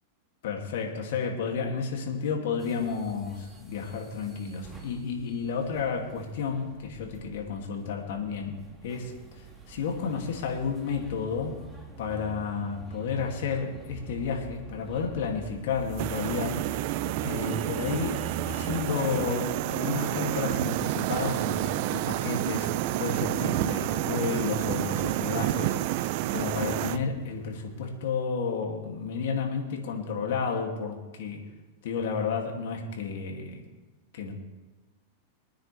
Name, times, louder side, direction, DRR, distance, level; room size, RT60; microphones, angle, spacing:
voice 1, 0.4-11.7 12.0-16.6 17.2-22.7 23.0-31.4 31.8-33.6 34.1-34.3, left 5 dB, 70° left, 1 dB, 2.5 m, -32 dB
sound 1, 2.6-19.3, right 3 dB, 10° right, 2.6 m, -45 dB
sound 2, 11.1-12.1 12.5-13.8 15.0-15.8 16.7-16.8 17.7-17.8 18.4-22.5 22.8-22.9 26.2-29.0, left 4 dB, 40° left, 3.3 m, -48 dB
sound 3, 16.0-27.0, right 14 dB, 55° right, 0.4 m, -29 dB
22.5 x 9.8 x 3.4 m, 1.2 s
supercardioid pair, 135°, 0 cm